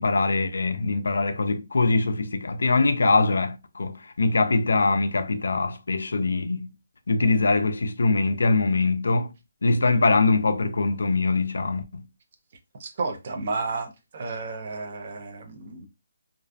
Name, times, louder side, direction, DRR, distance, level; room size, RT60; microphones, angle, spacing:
voice 1, 0.0-6.7 7.1-9.3 9.6-12.1, left 3 dB, 65° left, 0.3 m, -23 dB
voice 2, 12.8-15.9, right 3 dB, 30° right, 0.4 m, -32 dB
2.4 x 2.2 x 2.4 m
hypercardioid pair, 180°, 0 cm